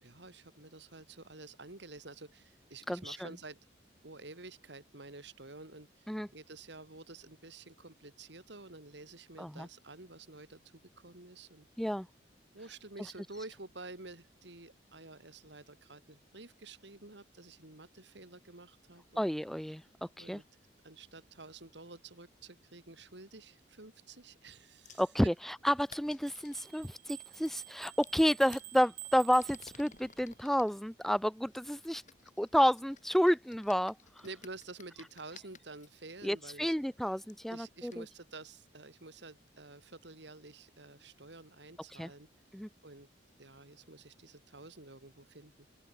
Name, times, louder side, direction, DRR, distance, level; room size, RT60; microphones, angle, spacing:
voice 1, 0.0-3.6 4.0-10.6 11.0-11.7 12.5-19.2 20.2-20.4 20.8-25.0 34.2-36.7 37.5-42.3 42.8-43.1 43.4-45.5, right 3 dB, 70° right, 2.6 m, -50 dB
voice 2, 2.9-3.3 6.1-6.3 9.4-9.7 11.8-12.1 19.2-20.4 25.0-32.0 32.4-34.2 36.2-38.1 42.0-42.1 42.5-42.7, equal, ahead, 0.6 m, -30 dB
sound 1, 24.8-25.1 25.8-26.7 27.4-28.7 29.3-30.7 31.5-35.9 36.7-36.8 37.3-37.4 37.9-38.0, left 7 dB, 40° left, 6.3 m, -56 dB
sound 2, 26.3-30.2, right 16 dB, 50° right, 1.3 m, -49 dB
open air
head